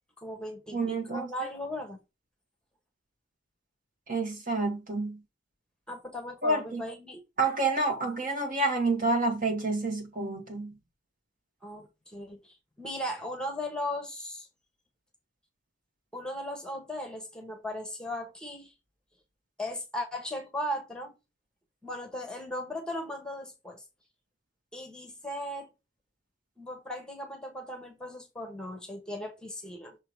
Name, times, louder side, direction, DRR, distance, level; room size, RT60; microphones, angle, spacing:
voice 1, 0.2-2.0 5.9-7.2 11.6-14.5 16.1-18.7 19.6-21.1 21.8-23.8 24.7-25.7 26.6-30.0, left 1 dB, 5° left, 1.1 m, -37 dB
voice 2, 0.7-1.3 4.1-5.2 6.4-6.8 7.4-10.7, right 2 dB, 45° right, 2.0 m, -28 dB
6.2 x 3.7 x 4.8 m
head